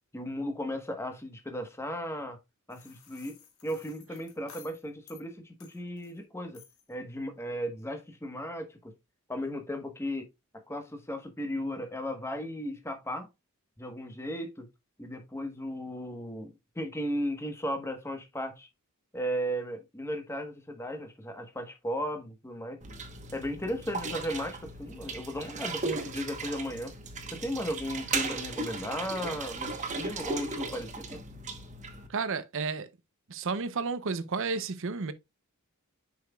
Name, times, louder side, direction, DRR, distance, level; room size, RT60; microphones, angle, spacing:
voice 1, 0.1-2.4 2.7-3.4 3.6-6.6 6.9-8.9 9.3-10.3 10.7-13.3 13.8-14.7 15.0-18.7 19.1-22.8 23.3-26.9 27.3-31.2, equal, 10° left, 1.1 m, -35 dB
sound 1, 2.7-5.2 5.6-6.2 6.5-6.9, left 7 dB, 70° left, 1.6 m, -55 dB
sound 2, 22.8-32.1, right 4 dB, 35° right, 1.0 m, -37 dB
voice 2, 32.1-32.9 33.3-35.1, right 4 dB, 60° right, 0.6 m, -32 dB
7.3 x 5.7 x 2.3 m
head